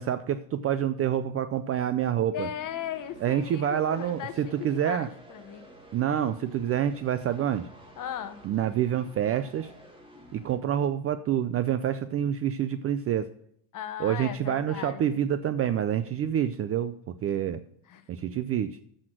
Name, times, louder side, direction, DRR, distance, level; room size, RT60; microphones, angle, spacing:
voice 1, 0.0-2.5 3.2-5.1 5.9-7.7 8.4-9.7 10.3-13.3 14.0-17.6 18.1-18.8, right 10 dB, 30° right, 12 dB, 0.4 m, -27 dB
sound 1, 1.6-10.6, right 1 dB, 10° right, 2.0 m, -51 dB
voice 2, 2.3-5.7 8.0-8.4 13.7-15.0 17.9-18.0, left 9 dB, 40° left, 9 dB, 1.2 m, -37 dB
7.5 x 6.4 x 7.5 m, 0.67 s
cardioid pair, 125°, 47 cm